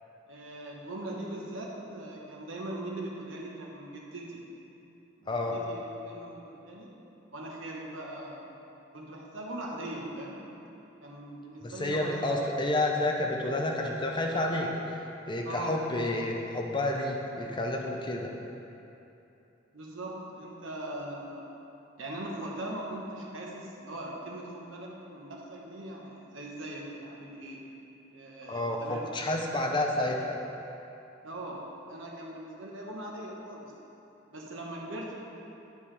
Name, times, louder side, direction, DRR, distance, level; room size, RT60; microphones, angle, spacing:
voice 1, 0.3-4.4 5.2-6.9 7.3-8.5 8.9-10.4 11.0-12.3 15.4-15.8 19.7-21.4 22.0-27.7 28.1-29.0 31.2-31.6 31.9-33.7 34.3-35.1, right 1 dB, 75° right, -2 dB, 1.1 m, -40 dB
voice 2, 11.6-14.7 15.3-18.3 28.5-30.2, left 1 dB, 25° left, 1 dB, 0.6 m, -30 dB
9.5 x 5.3 x 3.3 m, 2.9 s
head